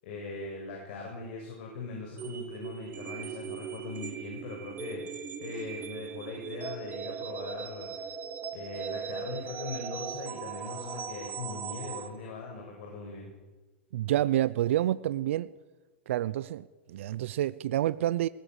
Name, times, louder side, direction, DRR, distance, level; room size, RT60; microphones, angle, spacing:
voice 1, 0.0-8.1 8.5-13.3, left 3 dB, 60° left, 7.6 m, -40 dB
sound 1, 2.2-12.1, right 6 dB, 25° right, 3.5 m, -39 dB
voice 2, 13.9-15.5 16.1-18.3, right 13 dB, 70° right, 0.8 m, -28 dB
21.5 x 19.0 x 8.4 m
hypercardioid pair, 120°, 7 cm